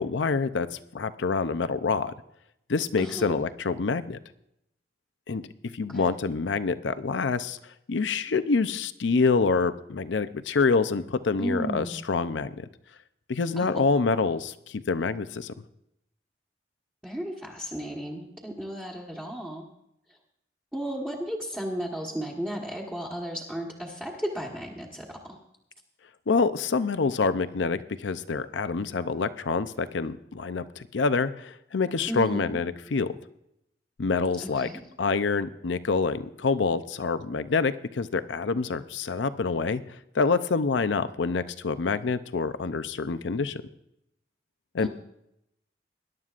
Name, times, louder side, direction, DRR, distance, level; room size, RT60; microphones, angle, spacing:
voice 1, 0.0-2.1 2.7-4.2 5.3-5.5 5.7-7.6 7.9-12.6 13.3-15.5 26.3-33.1 34.0-34.7 35.0-39.8 40.1-43.6 44.7-44.9, left 4 dB, 90° left, 12 dB, 0.6 m, -26 dB
voice 2, 3.0-3.4 5.9-6.1 11.4-12.0 13.6-13.8 17.0-19.6 20.7-25.4 32.1-32.6 34.4-34.8 44.8-44.9, equal, 5° right, -5 dB, 1.3 m, -34 dB
21.0 x 11.0 x 2.5 m, 0.80 s
head